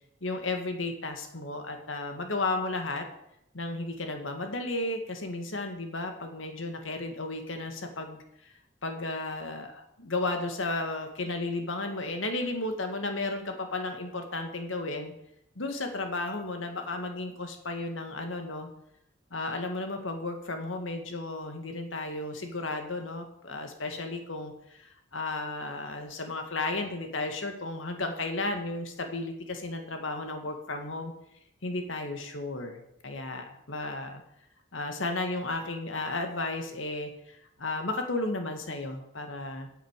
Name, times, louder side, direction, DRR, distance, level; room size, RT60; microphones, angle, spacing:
voice 1, 0.2-3.1 3.5-8.2 8.8-15.1 15.6-18.7 19.3-31.1 31.6-34.2 34.7-39.7, left 2 dB, 80° left, 5 dB, 2.0 m, -34 dB
10.5 x 8.2 x 8.2 m, 0.78 s
head